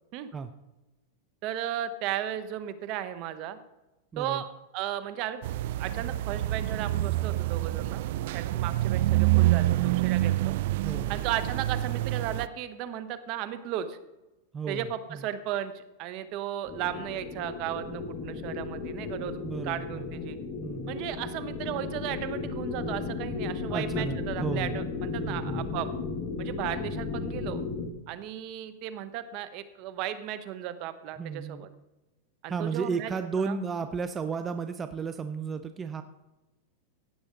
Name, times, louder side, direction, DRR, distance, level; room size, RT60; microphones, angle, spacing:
voice 1, 1.4-3.6 4.2-4.5 4.7-5.4 5.8-10.5 11.1-14.0 14.7-20.4 20.9-25.9 26.4-27.6 28.1-31.7 32.4-33.1 33.4-33.6, right 11 dB, 50° right, 12 dB, 1.0 m, -35 dB
voice 2, 4.1-4.4 10.8-11.2 14.5-15.2 19.4-20.1 20.6-21.0 23.7-24.8 25.2-25.7 31.2-31.7 32.5-36.0, right 5 dB, 20° right, 9 dB, 0.6 m, -34 dB
sound 1, 5.4-12.5, right 16 dB, 65° right, 0.3 m, -27 dB
sound 2, 16.7-27.9, left 4 dB, 40° left, 1.7 m, -35 dB
17.0 x 6.9 x 3.8 m, 1.0 s
hypercardioid pair, 125°, 0 cm